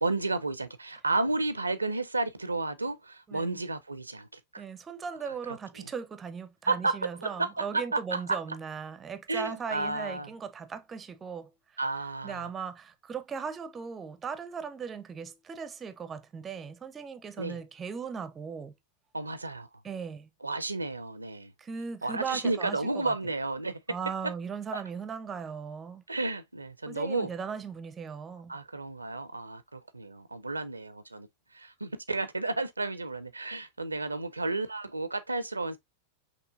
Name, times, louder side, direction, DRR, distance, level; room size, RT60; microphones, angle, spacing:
voice 1, 0.0-4.6 5.3-5.9 6.7-8.4 9.3-10.3 11.8-12.5 17.4-17.6 19.1-19.7 20.4-21.5 22.0-23.8 24.7-24.8 26.1-27.3 28.5-31.3 31.5-35.8, right 2 dB, 80° right, 0.4 m, -32 dB
voice 2, 3.3-3.6 4.6-11.8 12.2-18.7 19.8-20.3 21.6-23.1 23.9-26.0 26.9-28.6, right 6 dB, 20° right, 0.5 m, -38 dB
5.9 x 2.7 x 2.5 m
figure-of-eight pair, 90°, 0 cm